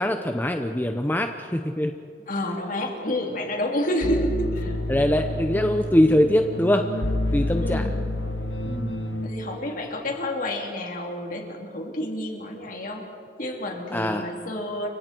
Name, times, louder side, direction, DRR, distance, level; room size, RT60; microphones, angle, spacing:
voice 1, 0.0-1.9 4.9-6.8 7.3-7.8 8.7-9.0 13.9-14.3, left 1 dB, 10° left, 6 dB, 0.8 m, -22 dB
voice 2, 2.3-4.8 7.6-7.9 9.2-13.1 13.4-14.9, left 1 dB, 50° left, 1 dB, 3.5 m, -29 dB
sound 1, 4.0-9.3, left 1 dB, 85° left, 1.6 m, -29 dB
30.0 x 24.5 x 4.6 m, 2.5 s
head